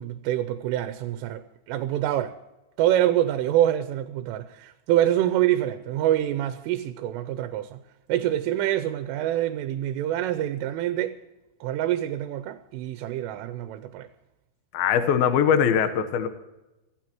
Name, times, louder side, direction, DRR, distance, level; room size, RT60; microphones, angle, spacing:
voice 1, 0.0-2.4 2.8-7.8 8.1-11.2 11.6-14.1, right 12 dB, 90° right, 3.2 m, -26 dB
voice 2, 14.7-16.3, left 8 dB, 75° left, 2.3 m, -21 dB
26.0 x 15.5 x 3.0 m
omnidirectional pair, 5.6 m